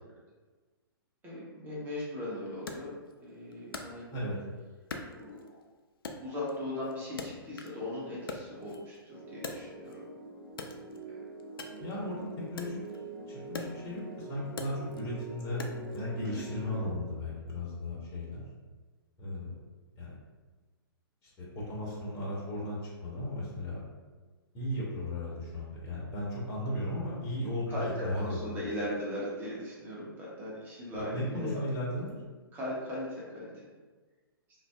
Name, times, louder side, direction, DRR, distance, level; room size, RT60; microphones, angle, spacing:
voice 1, 1.2-3.0 3.2-4.0 5.1-5.6 6.2-10.0 11.1-11.2 11.9-12.1 16.2-16.4 16.7-16.8 27.7-31.6 32.5-33.5, left 1 dB, 15° right, -6 dB, 0.9 m, -38 dB
Wood, 2.7-4.4 4.9-5.7 6.0-7.9 8.1-10.1 10.5-16.0, left 3 dB, 65° left, 0.4 m, -44 dB
sound 1, 9.1-16.9, right 3 dB, 60° right, 0.9 m, -45 dB
voice 2, 11.8-12.8 13.3-15.6 15.9-18.4 19.2-19.5 20.0-20.2 21.4-23.8 24.5-28.7 30.9-32.0, left 1 dB, 25° left, -6 dB, 0.8 m, -36 dB
2.5 x 2.0 x 3.4 m, 1.3 s
figure-of-eight pair, 120°, 13 cm